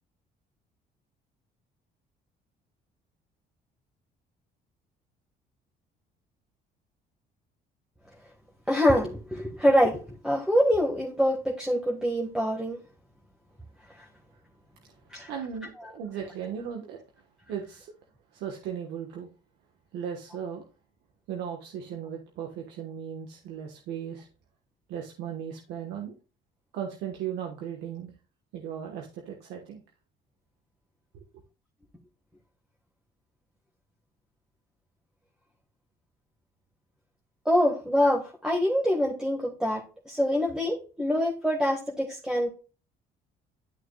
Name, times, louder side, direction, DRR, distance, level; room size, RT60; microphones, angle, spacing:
voice 1, 8.7-10.0 10.2-12.8 14.0-14.1 15.1-15.3 37.4-42.5, equal, 5° right, -1 dB, 1.6 m, -25 dB
voice 2, 15.3-17.0 17.5-17.9 18.3-19.3 19.9-20.6 21.3-24.3 24.9-26.1 26.7-28.1 28.5-29.8 31.1-31.2, right 8 dB, 80° right, 2 dB, 1.3 m, -37 dB
12.0 x 6.1 x 2.3 m, 0.35 s
cardioid pair, 110°, 17 cm